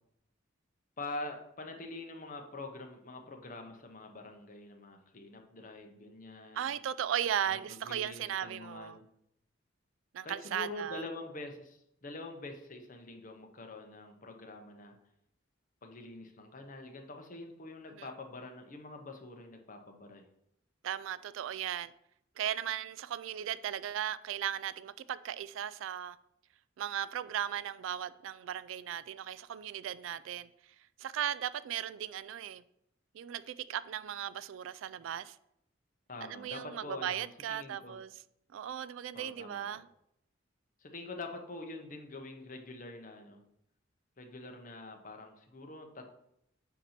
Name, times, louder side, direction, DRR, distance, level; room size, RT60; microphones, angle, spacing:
voice 1, 1.0-6.7 7.5-9.0 10.2-15.0 15.8-20.3 36.1-38.0 39.1-39.8 40.8-43.4 44.2-46.1, left 2 dB, 45° left, 0.9 m, -45 dB
voice 2, 6.5-9.0 10.1-11.0 17.9-18.1 20.8-21.9 22.4-26.2 26.8-30.5 31.0-32.6 33.1-35.4 36.2-38.1 38.5-39.9, right 10 dB, 80° right, 0.3 m, -37 dB
8.2 x 2.9 x 5.8 m
head